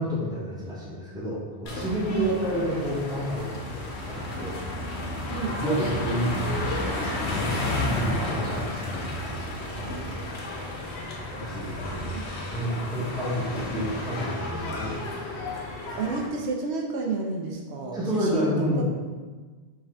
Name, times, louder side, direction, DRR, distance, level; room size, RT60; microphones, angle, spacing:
voice 1, 0.0-4.6 5.5-12.0 12.5-14.9 17.9-18.8, equal, 5° right, -6 dB, 0.7 m, -31 dB
sound 1, 1.7-16.3, left 1 dB, 80° left, 1.0 m, -32 dB
voice 2, 5.3-5.6 11.9-12.2 16.0-18.5 18.8-18.9, right 4 dB, 80° right, -1 dB, 0.9 m, -30 dB
4.8 x 2.5 x 3.3 m, 1.4 s
omnidirectional pair, 1.1 m